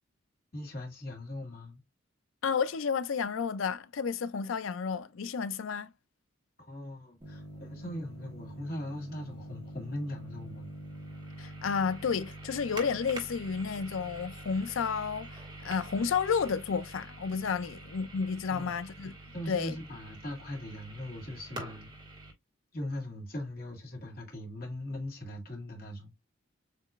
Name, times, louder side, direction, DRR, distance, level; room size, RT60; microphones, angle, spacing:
voice 1, 0.5-1.8 6.7-10.7 18.5-18.8 19.3-21.9 22.7-26.1, left 1 dB, 45° left, 1.9 m, -40 dB
voice 2, 2.4-5.9 11.4-19.1 19.5-19.7, left 6 dB, 75° left, 0.5 m, -31 dB
sound 1, 7.2-22.3, right 2 dB, 25° right, 1.5 m, -45 dB
7.4 x 3.0 x 2.4 m
head